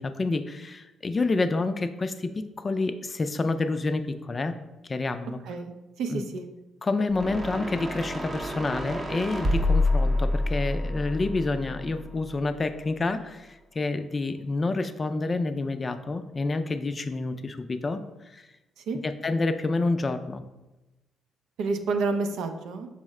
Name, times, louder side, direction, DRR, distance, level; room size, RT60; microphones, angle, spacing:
voice 1, 0.0-4.6 4.8-5.4 6.1-6.2 6.8-18.0 18.3-18.4 19.0-20.4, left 3 dB, 30° left, 9 dB, 0.3 m, -28 dB
voice 2, 6.0-6.5 18.9-19.0 21.6-22.9, right 4 dB, 80° right, 6 dB, 0.5 m, -29 dB
sound 1, 7.1-12.4, left 2 dB, 25° right, 0.7 m, -28 dB
5.4 x 2.1 x 4.7 m, 1.0 s
cardioid pair, 90°, 0 cm